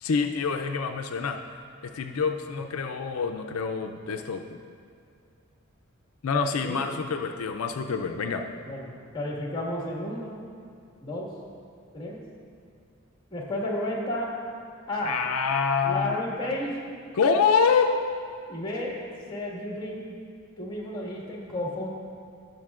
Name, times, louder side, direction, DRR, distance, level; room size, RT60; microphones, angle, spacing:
voice 1, 0.0-1.4 1.8-4.6 6.2-8.4 15.0-16.2 17.1-18.0, left 5 dB, 85° left, 5 dB, 0.5 m, -26 dB
voice 2, 8.6-10.4 11.0-11.3 11.9-12.2 13.3-14.3 14.9-15.1 15.8-16.7 18.5-18.9 19.3-20.0 20.6-21.9, left 1 dB, 20° left, -3 dB, 1.7 m, -32 dB
18.0 x 6.6 x 2.4 m, 2.3 s
head